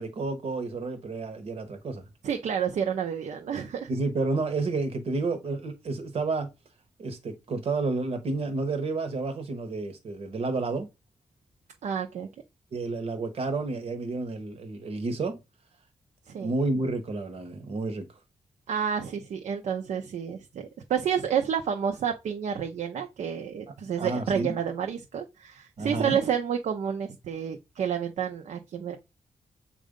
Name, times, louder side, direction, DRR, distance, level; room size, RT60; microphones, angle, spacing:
voice 1, 0.0-2.0 3.9-6.5 7.0-10.9 12.7-15.4 16.4-18.0 24.0-24.6 25.8-26.2, right 3 dB, 55° right, 1.0 m, -30 dB
voice 2, 2.2-3.9 11.8-12.3 16.3-16.5 18.7-29.0, right 8 dB, 75° right, 0.7 m, -30 dB
7.4 x 2.5 x 5.1 m
wide cardioid pair, 165°, 12 cm